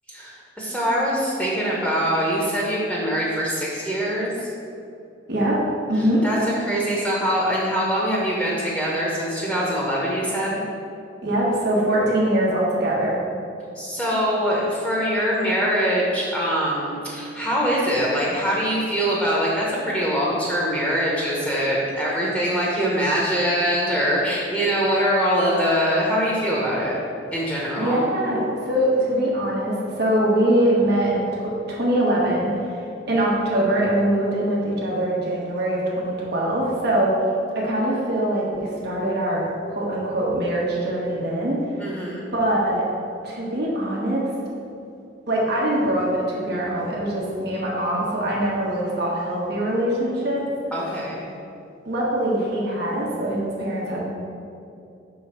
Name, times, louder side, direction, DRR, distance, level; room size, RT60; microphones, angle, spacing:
voice 1, 0.1-4.5 6.2-6.4 6.6-10.6 13.7-26.9 27.3-28.0 41.8-42.3 50.7-51.2, equal, 5° left, -5 dB, 1.0 m, -23 dB
voice 2, 5.3-6.2 11.2-13.2 27.8-37.2 37.5-42.0 42.3-42.9 43.2-44.2 45.3-50.5 51.8-54.0, right 1 dB, 60° right, -4 dB, 1.4 m, -23 dB
6.2 x 3.6 x 5.8 m, 2.6 s
head